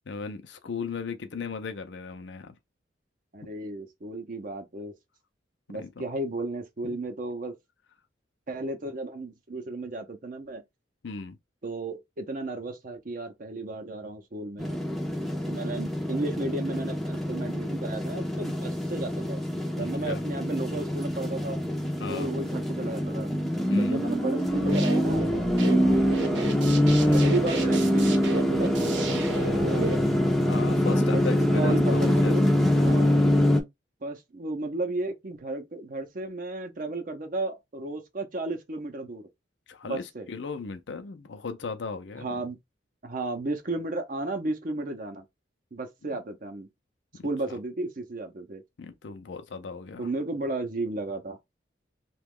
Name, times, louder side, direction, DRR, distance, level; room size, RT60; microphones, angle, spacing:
voice 1, 0.1-2.5 5.8-6.1 6.8-7.0 11.0-11.4 19.8-20.2 22.0-22.3 23.7-24.0 26.8-27.3 30.5-33.0 39.7-42.3 47.2-47.3 48.8-50.1, left 5 dB, 70° left, 0.5 m, -37 dB
voice 2, 3.3-4.9 5.7-7.5 8.5-10.6 11.6-14.8 15.5-21.6 22.1-23.3 23.7-29.3 29.7-30.1 30.9-32.4 32.8-33.3 34.0-39.3 39.8-40.3 42.2-42.6 43.0-45.2 45.7-46.7 47.2-48.6 50.0-51.4, right 2 dB, 45° right, 0.6 m, -34 dB
sound 1, 14.6-33.6, equal, ahead, 0.5 m, -25 dB
sound 2, 24.5-29.9, right 4 dB, 75° right, 0.8 m, -35 dB
2.9 x 2.3 x 3.6 m
head